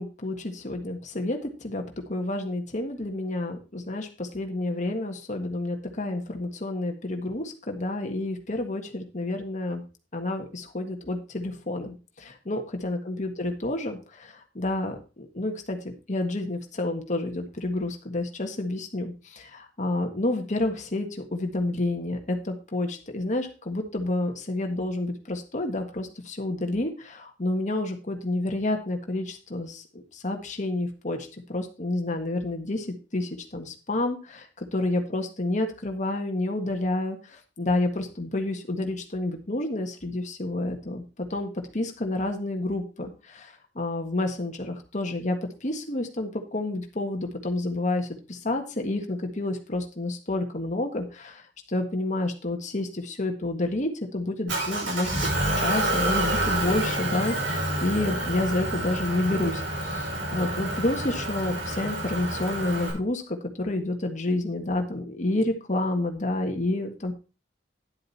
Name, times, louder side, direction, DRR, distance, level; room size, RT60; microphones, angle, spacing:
voice 1, 0.0-1.8 2.1-9.8 10.1-51.4 51.7-55.3 55.5-67.1, left 2 dB, 40° left, 4 dB, 1.7 m, -29 dB
Motor vehicle (road) / Engine, 54.5-62.9, right 1 dB, 75° right, 5.5 m, -28 dB
11.0 x 7.8 x 4.3 m, 0.33 s
head